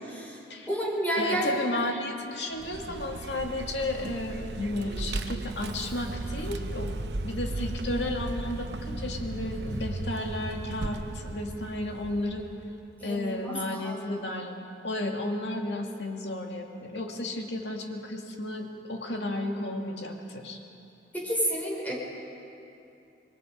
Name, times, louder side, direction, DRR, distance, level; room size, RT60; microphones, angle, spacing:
voice 1, 0.0-0.4 0.7-1.5 13.0-14.2 21.1-21.9, right 1 dB, 10° left, -3 dB, 4.7 m, -30 dB
voice 2, 1.2-12.5 13.0-14.6 14.8-20.6, left 1 dB, 75° left, 2 dB, 2.2 m, -33 dB
Vehicle, 2.5-12.9, right 2 dB, 70° right, 0.9 m, -36 dB
26.0 x 22.0 x 5.2 m, 2.7 s
head